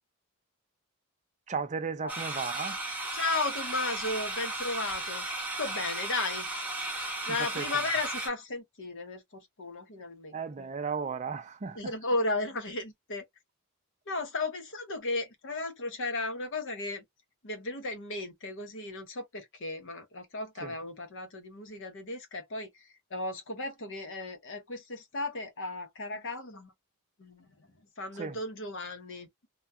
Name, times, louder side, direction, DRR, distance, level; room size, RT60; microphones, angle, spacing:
voice 1, 1.5-2.8 7.3-7.7 10.3-11.9 20.6-20.7 28.1-28.4, right 5 dB, 30° right, 0.4 m, -35 dB
sound 1, 2.1-8.3, right 2 dB, 5° right, 0.8 m, -35 dB
voice 2, 3.1-5.2 5.6-6.5 7.3-10.7 11.8-13.2 14.1-17.0 17.4-22.7 23.1-26.7 27.2-27.5 28.0-29.5, left 2 dB, 55° left, 0.8 m, -35 dB
2.3 x 2.3 x 2.6 m
head